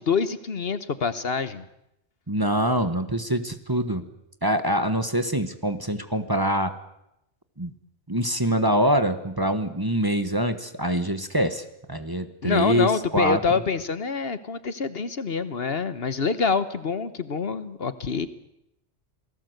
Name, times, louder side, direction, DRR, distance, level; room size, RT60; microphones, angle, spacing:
voice 1, 0.0-1.6 12.4-18.3, left 5 dB, 55° left, 13 dB, 1.3 m, -26 dB
voice 2, 2.3-4.1 4.4-6.7 7.6-7.7 8.1-13.4, equal, 20° right, 9 dB, 1.3 m, -24 dB
27.5 x 18.5 x 8.0 m, 0.83 s
omnidirectional pair, 1.2 m